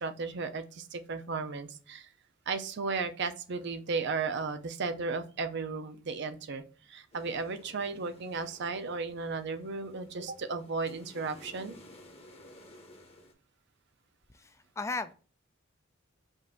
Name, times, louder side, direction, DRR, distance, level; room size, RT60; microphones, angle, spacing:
voice 1, 0.0-2.1 2.5-6.6 6.9-11.8, right 4 dB, 60° right, 0.6 m, -35 dB
sound 1, 7.1-13.3, left 1 dB, 30° left, 0.8 m, -54 dB
voice 2, 14.3-15.1, left 3 dB, 15° left, 0.3 m, -36 dB
5.2 x 2.6 x 3.7 m
head